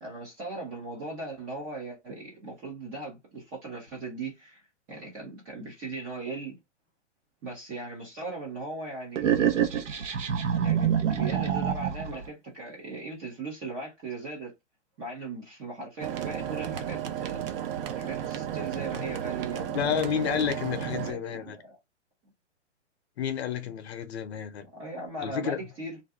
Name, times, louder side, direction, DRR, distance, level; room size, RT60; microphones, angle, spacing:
voice 1, 0.0-4.6 4.9-6.6 7.4-9.5 10.6-14.5 15.0-17.4 17.9-19.8 21.0-21.8 24.6-26.0, right 3 dB, 10° right, 0.4 m, -38 dB
sound 1, 9.2-12.2, right 8 dB, 90° right, 0.9 m, -26 dB
sound 2, 16.0-21.1, right 10 dB, 50° right, 0.6 m, -33 dB
voice 2, 19.7-21.6 23.2-24.7 25.2-25.6, left 8 dB, 60° left, 0.7 m, -30 dB
2.6 x 2.3 x 3.4 m
hypercardioid pair, 145°, 36 cm